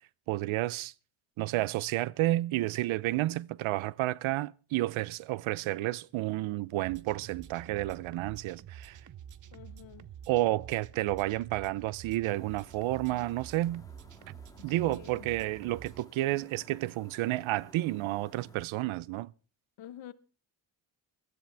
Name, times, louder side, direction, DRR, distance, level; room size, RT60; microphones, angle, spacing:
voice 1, 0.3-0.9 1.4-9.0 10.3-13.8 14.6-19.3, right 17 dB, 90° right, 0.6 m, -31 dB
sound 1, 6.7-16.0, right 9 dB, 40° right, 0.6 m, -49 dB
voice 2, 9.5-10.1 14.6-15.3 19.8-20.1, left 11 dB, 75° left, 1.1 m, -48 dB
sound 2, 12.2-18.6, left 2 dB, 10° left, 1.9 m, -57 dB
21.5 x 13.0 x 3.4 m
cardioid pair, 100°, 46 cm